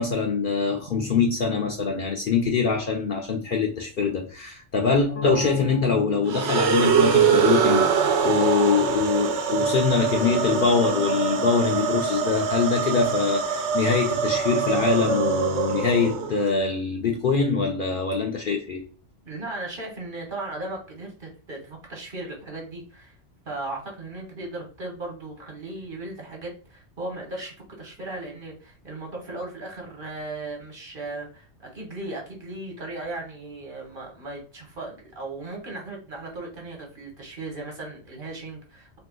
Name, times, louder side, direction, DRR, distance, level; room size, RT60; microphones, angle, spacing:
voice 1, 0.0-18.8, left 5 dB, 55° left, 0.6 m, -24 dB
sound 1, 5.1-16.4, left 4 dB, 80° left, 0.9 m, -38 dB
sound 2, 6.3-16.5, right 7 dB, 70° right, 0.8 m, -23 dB
voice 2, 19.2-23.2 23.5-39.0, right 2 dB, 50° right, 1.1 m, -37 dB
2.7 x 2.3 x 3.6 m
omnidirectional pair, 1.2 m